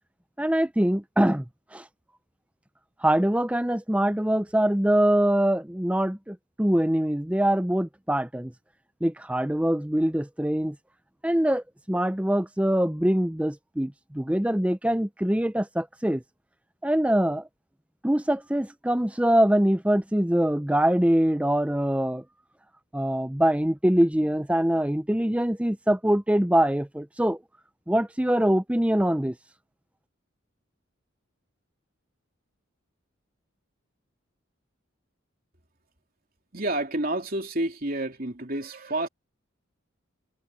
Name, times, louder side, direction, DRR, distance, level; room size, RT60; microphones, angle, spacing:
voice 1, 0.4-1.5 1.7-1.8 3.0-8.5 9.0-10.8 11.2-16.2 16.8-17.4 18.0-22.2 22.9-27.4 27.9-29.4, right 1 dB, 5° right, 0.6 m, -23 dB
voice 2, 36.5-39.1, right 1 dB, 45° right, 3.3 m, -29 dB
head